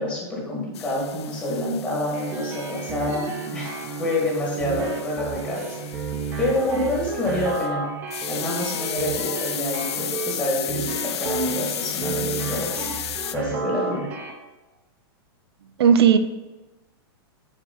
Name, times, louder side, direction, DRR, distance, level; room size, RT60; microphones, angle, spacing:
voice 1, 0.0-5.8 6.4-7.9 8.3-12.9 13.3-14.1, left 1 dB, 10° left, -4 dB, 2.0 m, -27 dB
sound 1, 0.7-7.7 8.1-13.4, left 10 dB, 90° left, 0.6 m, -34 dB
sound 2, 2.1-14.3, right 4 dB, 15° right, 0.9 m, -32 dB
voice 2, 8.9-9.5 15.8-16.2, right 7 dB, 75° right, 9 dB, 0.7 m, -18 dB
8.1 x 4.8 x 5.4 m, 1.1 s
supercardioid pair, 175°, 13 cm